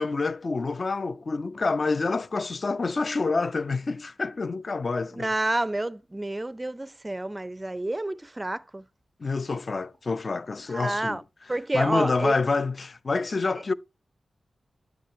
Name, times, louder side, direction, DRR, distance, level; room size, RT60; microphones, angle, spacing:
voice 1, 0.0-5.3 9.2-11.2 11.7-13.7, left 3 dB, 50° left, 0.4 m, -27 dB
voice 2, 5.1-8.8 10.7-11.2 11.5-12.4, right 1 dB, 20° right, 0.4 m, -29 dB
9.1 x 8.5 x 2.7 m
cardioid pair, 65°, 0 cm